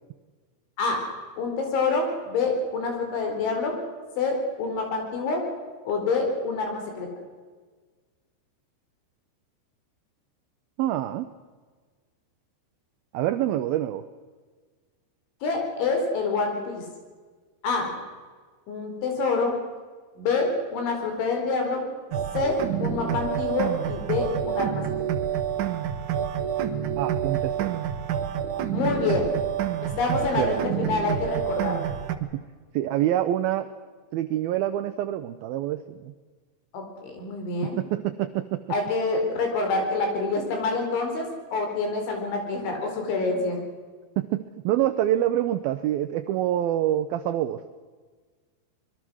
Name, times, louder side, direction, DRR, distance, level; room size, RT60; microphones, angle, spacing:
voice 1, 1.4-3.8 4.2-5.4 5.9-7.1 15.4-16.8 17.6-17.9 18.7-19.5 20.2-21.9 22.3-25.1 28.7-29.3 30.0-31.8 36.7-37.8 38.7-43.6, left 3 dB, 80° left, 3 dB, 6.8 m, -27 dB
voice 2, 10.8-11.3 13.1-14.0 27.0-27.8 30.4-30.6 32.2-32.4 32.7-33.7 34.1-36.1 37.6-38.6 44.2-47.6, right 12 dB, 85° right, 11 dB, 2.1 m, -26 dB
sound 1, 22.1-32.2, right 9 dB, 65° right, 2.1 m, -28 dB
25.0 x 22.0 x 6.3 m, 1.5 s
omnidirectional pair, 5.3 m